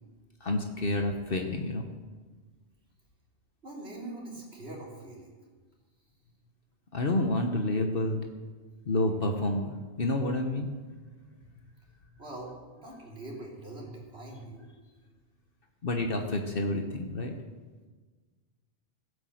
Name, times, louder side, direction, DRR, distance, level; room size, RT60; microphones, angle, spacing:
voice 1, 0.4-1.8 6.9-8.2 8.8-10.8 15.8-17.3, left 2 dB, 55° left, 4 dB, 1.3 m, -29 dB
voice 2, 3.6-5.3 12.2-14.7, right 2 dB, 70° right, -3 dB, 3.6 m, -43 dB
16.0 x 8.6 x 7.8 m, 1.4 s
omnidirectional pair, 1.1 m